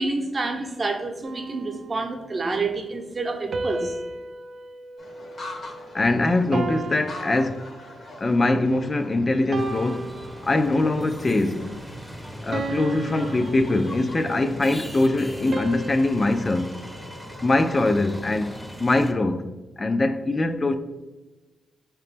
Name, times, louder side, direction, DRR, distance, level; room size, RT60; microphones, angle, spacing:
voice 1, 0.0-3.9, right 3 dB, 40° right, 0.7 m, -28 dB
sound 1, 1.2-2.5 3.5-6.0 6.5-8.2 8.8-9.0 9.5-11.1 11.5-11.8 12.5-14.4 15.5-17.9, right 3 dB, 60° right, 0.3 m, -36 dB
sound 2, 5.0-17.7, left 2 dB, 60° left, 0.9 m, -44 dB
voice 2, 5.9-7.7 8.2-10.1 10.4-11.7 12.4-16.7 17.4-19.5 19.8-20.7, left 2 dB, 35° left, 0.3 m, -22 dB
sound 3, 9.5-19.1, equal, ahead, 0.7 m, -39 dB
4.1 x 2.9 x 3.3 m
supercardioid pair, 50°, 0 cm